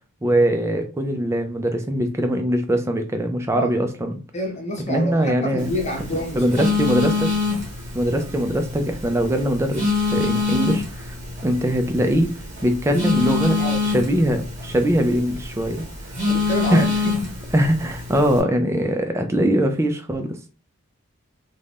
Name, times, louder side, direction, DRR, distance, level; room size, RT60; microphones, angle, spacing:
voice 1, 0.2-4.2 4.9-5.7 6.4-7.3 7.9-11.1 11.4-12.3 12.6-13.6 13.8-15.8 16.7-16.9 17.5-20.3, equal, 10° right, 0.3 m, -21 dB
voice 2, 4.3-7.0 13.6-13.9 16.2-17.4, equal, 30° left, 0.7 m, -28 dB
Telephone, 5.6-18.4, left 4 dB, 35° right, 1.1 m, -26 dB
2.5 x 2.2 x 3.3 m
head